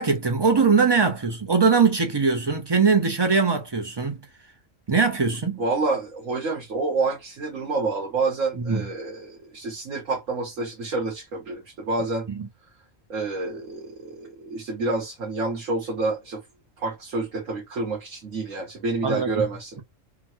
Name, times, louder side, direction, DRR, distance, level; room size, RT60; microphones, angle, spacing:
voice 1, 0.0-4.2 4.9-5.6 8.6-8.9 12.3-12.5 19.0-19.4, right 5 dB, 35° right, 0.4 m, -21 dB
voice 2, 5.6-12.3 13.1-16.4 16.8-19.8, right 3 dB, 85° right, 1.6 m, -28 dB
3.8 x 2.1 x 2.8 m
omnidirectional pair, 1.3 m